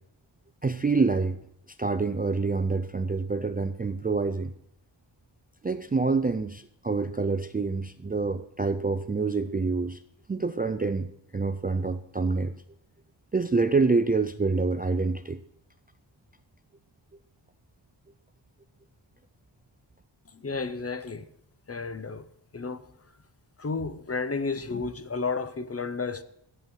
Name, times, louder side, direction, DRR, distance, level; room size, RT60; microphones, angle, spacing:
voice 1, 0.6-1.4 1.8-4.5 5.6-10.0 10.3-12.5 13.3-15.4, right 4 dB, 20° right, 0.3 m, -27 dB
voice 2, 20.3-21.3 21.7-22.3 22.5-22.9 23.6-26.2, left 4 dB, 30° left, 0.6 m, -32 dB
8.3 x 7.5 x 7.1 m
wide cardioid pair, 110°, 48 cm